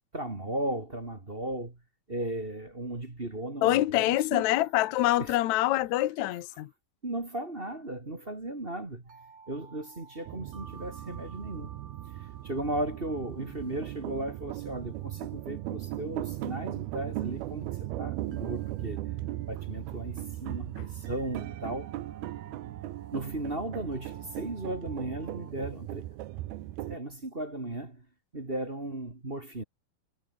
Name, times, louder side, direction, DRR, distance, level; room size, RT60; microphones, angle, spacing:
voice 1, 0.1-1.8 2.1-4.4 5.2-5.3 7.0-9.0 9.5-11.7 12.4-17.7 18.0-19.0 19.5-21.9 23.1-26.1 26.8-28.0 28.3-29.6, right 1 dB, 20° right, 2.1 m, -36 dB
voice 2, 3.6-6.7, left 15 dB, 70° left, 1.9 m, -25 dB
sound 1, 9.0-25.5, right 4 dB, 50° right, 6.3 m, -56 dB
sound 2, 10.3-27.0, right 15 dB, 85° right, 3.0 m, -38 dB
omnidirectional pair, 4.3 m